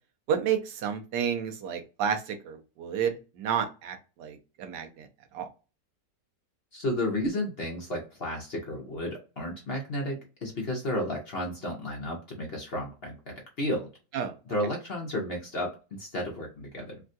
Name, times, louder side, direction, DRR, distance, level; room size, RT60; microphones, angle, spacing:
voice 1, 0.3-5.1 5.3-5.5 14.1-14.3, right 8 dB, 85° right, 6 dB, 1.3 m, -31 dB
voice 2, 6.7-13.9 14.5-17.0, left 1 dB, 50° left, 0 dB, 0.8 m, -32 dB
3.5 x 2.2 x 2.5 m, 0.31 s
omnidirectional pair, 1.8 m